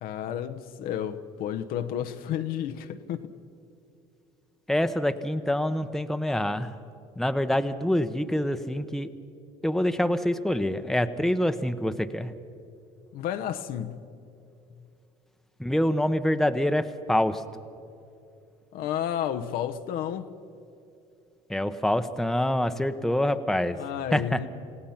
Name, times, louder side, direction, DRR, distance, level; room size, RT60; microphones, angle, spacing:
voice 1, 0.0-3.3 13.1-14.0 18.7-20.3 23.7-24.5, left 10 dB, 65° left, 1.0 m, -31 dB
voice 2, 4.7-6.7 7.2-9.1 9.6-12.3 15.6-17.4 21.5-23.8 24.1-24.4, left 1 dB, ahead, 1.0 m, -26 dB
28.5 x 17.0 x 5.8 m
hypercardioid pair, 75°, 16 cm